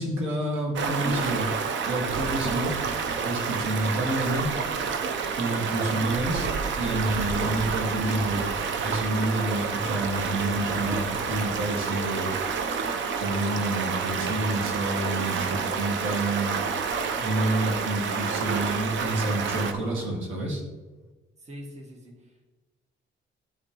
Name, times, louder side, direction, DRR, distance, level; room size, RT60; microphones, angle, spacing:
voice 1, 0.0-1.5 1.9-2.7 3.2-4.5 5.4-6.5 6.8-8.5 8.8-12.3 13.2-16.5 17.2-20.6, right 1 dB, 85° right, 0 dB, 1.8 m, -28 dB
Stream, 0.7-19.7, right 5 dB, 70° right, 0.7 m, -29 dB
Drawer open or close, 3.8-5.2 6.8-8.3 9.5-11.3 12.5-14.2 16.6-17.9 19.3-20.4 20.7-20.8, equal, 10° right, 1.9 m, -48 dB
voice 2, 21.4-22.5, equal, 35° right, 1 dB, 1.6 m, -44 dB
12.0 x 5.0 x 3.0 m, 1.2 s
cardioid pair, 90°, 20 cm